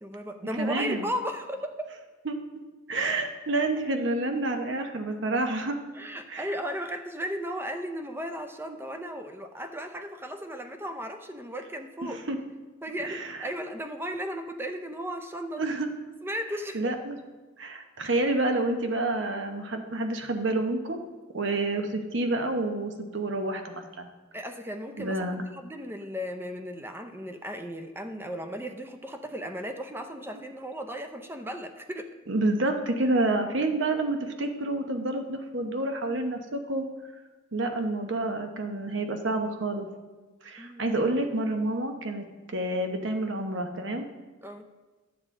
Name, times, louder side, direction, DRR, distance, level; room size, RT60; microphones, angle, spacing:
voice 1, 0.0-1.9 5.9-12.2 12.8-15.6 16.2-16.9 24.3-32.1 40.6-40.9 44.4-44.7, equal, 10° right, 6 dB, 0.5 m, -36 dB
voice 2, 0.6-1.1 2.3-2.4 2.9-5.8 6.3-6.5 12.0-12.4 13.0-13.5 15.5-15.9 16.7-17.2 17.6-21.0 21.3-24.1 25.0-25.5 32.3-36.8 37.5-39.9 40.4-44.1, right 2 dB, 60° right, 5 dB, 0.9 m, -28 dB
11.5 x 7.2 x 3.7 m, 1.3 s
head